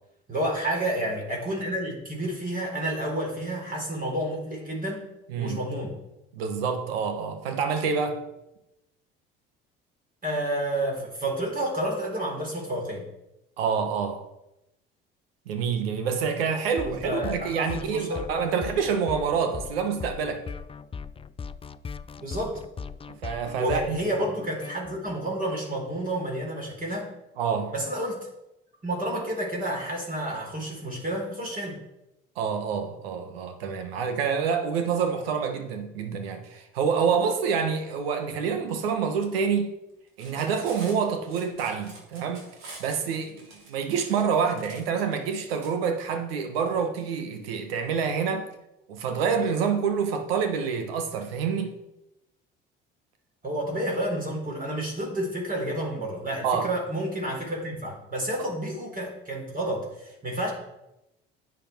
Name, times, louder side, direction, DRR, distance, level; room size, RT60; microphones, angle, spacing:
voice 1, 0.3-5.1 5.4-5.9 10.2-13.1 16.8-18.2 22.2-22.6 23.6-27.1 27.7-28.3 28.8-31.8 53.4-60.5, right 1 dB, 30° right, 4.0 m, -30 dB
voice 2, 6.3-8.2 13.6-14.2 15.5-20.4 23.2-24.1 27.4-27.7 32.4-39.7 40.2-42.5 42.8-48.5 48.9-51.7 56.4-56.7, right 6 dB, 85° right, 1.3 m, -27 dB
sound 1, 16.8-25.2, left 5 dB, 20° left, 0.5 m, -39 dB
Cutlery silverware, 40.1-45.7, right 2 dB, 65° right, 3.7 m, -47 dB
10.5 x 8.1 x 4.5 m
hypercardioid pair, 65°, 29 cm